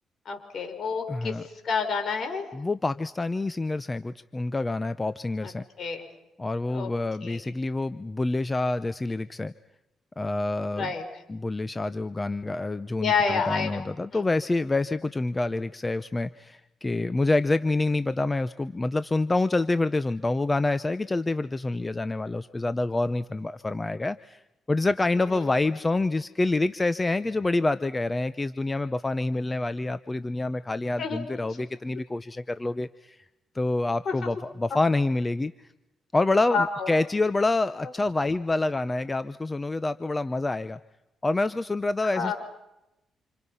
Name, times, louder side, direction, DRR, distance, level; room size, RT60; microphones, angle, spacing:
voice 1, 0.3-1.4 1.6-2.5 5.4-5.5 5.8-6.0 6.7-6.9 7.2-7.4 10.8-11.0 13.0-13.9 14.1-14.3 25.3-25.6 31.0-31.2 34.1-34.2 36.5-36.9 42.1-42.3, left 5 dB, 60° left, 5 dB, 5.8 m, -28 dB
voice 2, 1.1-1.4 2.5-5.6 6.4-9.5 10.2-10.9 11.3-24.4 24.7-33.2 33.5-35.7 36.1-40.8 41.2-42.3, left 2 dB, 20° left, 13 dB, 0.8 m, -27 dB
29.0 x 28.0 x 5.7 m, 0.92 s
cardioid pair, 80°, 0 cm